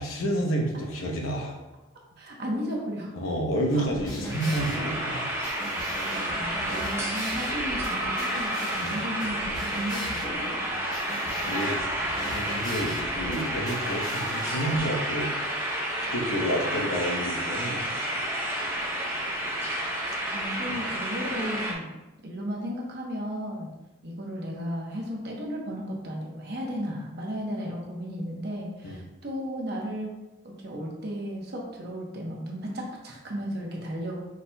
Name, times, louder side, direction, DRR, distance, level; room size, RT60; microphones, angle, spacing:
voice 1, 0.0-1.6 3.2-5.3 8.8-9.0 10.7-10.8 11.1-11.8 12.3-15.3 16.0-17.8 28.8-29.0, equal, 80° left, 0 dB, 0.8 m, -30 dB
voice 2, 2.2-3.1 3.7-3.9 5.7-10.6 11.0-11.1 20.1-21.9 22.2-23.7 24.0-30.1 30.4-34.2, equal, 50° right, -1 dB, 0.9 m, -34 dB
sound 1, 3.8-14.8, equal, 35° left, 1.2 m, -38 dB
sound 2, 4.3-21.7, right 1 dB, 10° right, 0.6 m, -30 dB
5.0 x 4.1 x 2.2 m, 1.0 s
head